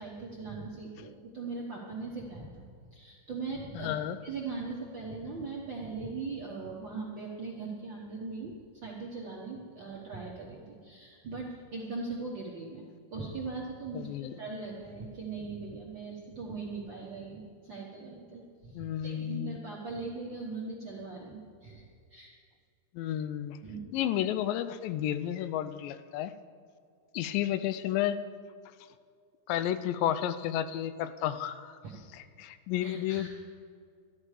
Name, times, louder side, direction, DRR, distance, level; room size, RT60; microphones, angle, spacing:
voice 1, 0.0-4.0 4.2-8.6 8.8-12.8 13.1-22.3 23.6-23.9 31.8-31.9 32.8-33.3, right 4 dB, 60° right, -3 dB, 1.2 m, -40 dB
voice 2, 3.7-4.2 13.9-14.3 18.7-19.6 22.9-23.6 23.9-26.3 27.1-28.2 29.5-31.8 32.1-33.3, left 11 dB, 90° left, 12 dB, 2.3 m, -32 dB
12.5 x 12.0 x 4.9 m, 2.2 s
omnidirectional pair, 3.9 m